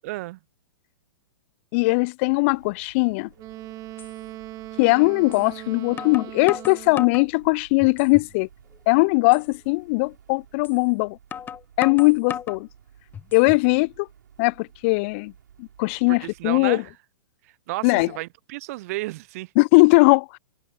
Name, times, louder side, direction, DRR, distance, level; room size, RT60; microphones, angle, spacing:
voice 1, 0.0-0.4 16.1-16.9 17.7-19.5, right 19 dB, 45° right, 0.7 m, -32 dB
voice 2, 1.7-3.3 4.8-8.5 8.9-11.2 11.8-12.7 13.3-14.1 14.4-15.3 15.6-16.8 17.8-18.1 19.6-20.4, left 28 dB, 40° left, 0.4 m, -20 dB
sound 1, 2.3-16.6, right 9 dB, 65° right, 6.6 m, -54 dB
sound 2, 3.4-3.5 4.0-4.1 5.3-5.5 6.0-7.3 7.8-8.3 8.7-8.8 9.3-9.5 10.6-10.8 11.3-12.6 13.1-13.7, left 8 dB, 20° left, 0.8 m, -35 dB
Wind instrument woodwind instrument, 3.4-7.3, right 16 dB, 30° right, 2.0 m, -39 dB
figure-of-eight pair, 110°, 11 cm